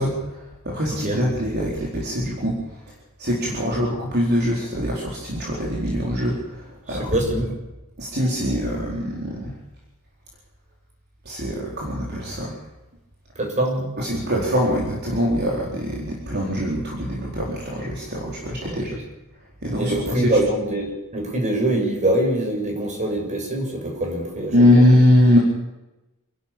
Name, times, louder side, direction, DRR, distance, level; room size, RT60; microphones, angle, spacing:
voice 1, 0.0-2.8 3.2-7.2 8.0-9.5 11.2-12.6 14.0-19.0 19.6-20.4 24.5-25.4, left 1 dB, 50° right, -3 dB, 4.3 m, -22 dB
voice 2, 0.9-1.2 3.4-3.7 6.9-7.6 13.3-13.9 18.6-18.8 19.8-24.5, right 1 dB, 35° right, 2 dB, 6.9 m, -24 dB
28.0 x 12.0 x 8.8 m, 0.99 s
head